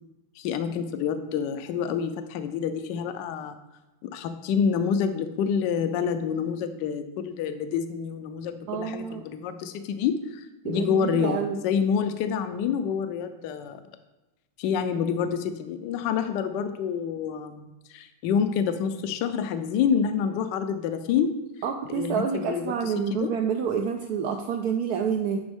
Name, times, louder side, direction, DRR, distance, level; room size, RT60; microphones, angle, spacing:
voice 1, 0.4-3.6 4.0-13.8 14.6-21.3 21.9-23.3, left 7 dB, 75° left, 9 dB, 1.1 m, -27 dB
voice 2, 8.7-9.2 10.6-11.6 21.6-25.4, right 7 dB, 85° right, 5 dB, 0.8 m, -28 dB
10.5 x 4.0 x 3.5 m, 1.1 s
omnidirectional pair, 2.2 m